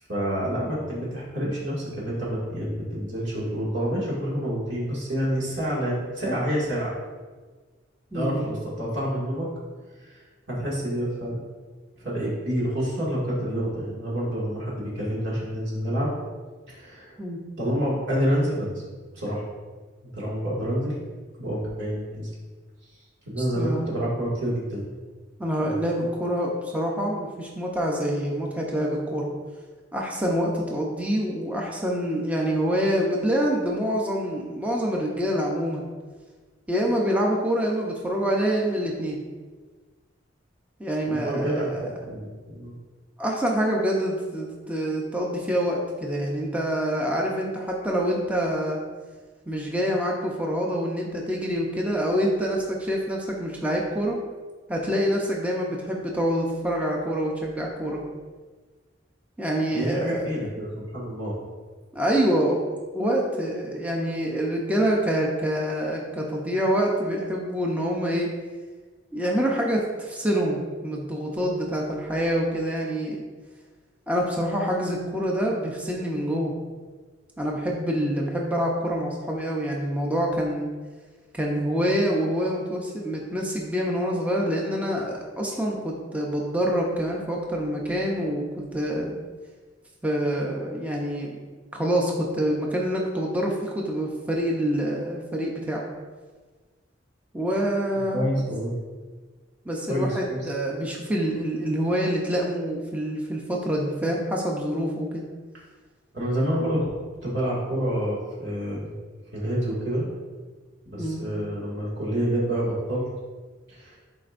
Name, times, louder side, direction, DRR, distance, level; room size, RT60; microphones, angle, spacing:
voice 1, 0.1-6.9 8.1-9.5 10.0-10.2 10.5-11.4 12.0-16.1 16.7-17.2 17.6-18.8 19.1-19.4 20.1-21.0 21.4-22.3 23.3-24.9 25.6-25.8 41.0-42.8 59.7-61.4 98.1-98.7 99.9-100.5 106.1-106.9 107.2-108.9 109.3-110.1 110.9-113.1 113.7-114.0, equal, 65° right, -6 dB, 2.1 m, -28 dB
voice 2, 8.1-8.5 17.2-17.4 23.6-24.0 25.4-29.2 29.9-35.8 36.7-39.2 40.8-41.8 43.2-48.8 49.5-54.2 54.7-58.0 59.4-60.3 61.9-62.6 62.9-68.3 69.1-73.2 74.1-76.5 77.4-80.7 81.3-89.1 90.0-91.4 91.7-95.8 97.3-98.3 99.7-105.2 111.0-111.2, equal, 10° right, -2 dB, 0.7 m, -26 dB
11.0 x 4.4 x 2.6 m, 1.4 s
head